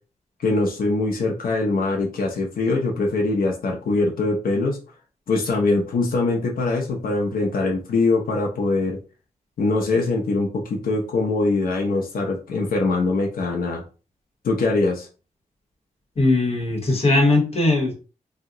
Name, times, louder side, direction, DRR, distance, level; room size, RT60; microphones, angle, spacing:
voice 1, 0.4-4.8 5.3-9.0 9.6-13.8 14.4-15.1, left 3 dB, 85° left, 0 dB, 0.6 m, -22 dB
voice 2, 16.2-18.0, left 2 dB, 45° left, 1 dB, 1.0 m, -19 dB
2.7 x 2.1 x 3.7 m, 0.35 s
wide cardioid pair, 160°, 15 cm